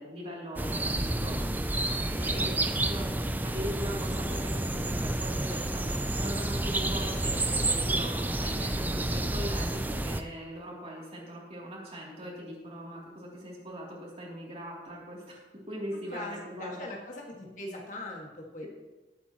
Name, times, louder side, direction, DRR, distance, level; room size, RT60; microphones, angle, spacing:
voice 1, 0.0-1.4 2.1-15.4 15.7-16.9, equal, 35° right, -4 dB, 3.1 m, -40 dB
sound 1, 0.6-10.2, right 1 dB, 10° right, 0.4 m, -30 dB
voice 2, 15.9-18.6, left 1 dB, 45° left, -1 dB, 2.0 m, -41 dB
19.5 x 8.5 x 3.1 m, 1.1 s
head